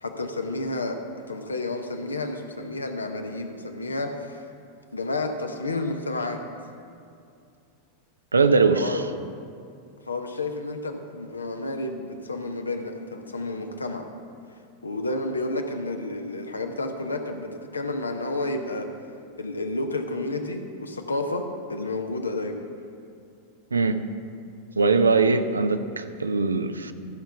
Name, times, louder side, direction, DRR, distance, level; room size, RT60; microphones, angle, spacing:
voice 1, 0.0-4.4 4.9-6.4 8.7-9.0 10.1-14.1 14.8-18.9 19.3-22.6, left 2 dB, 75° left, 5 dB, 0.8 m, -31 dB
voice 2, 8.3-9.0 23.7-24.0 24.8-26.9, right 4 dB, 75° right, 9 dB, 0.5 m, -21 dB
14.0 x 5.7 x 5.7 m, 2.4 s
figure-of-eight pair, 90°, 0 cm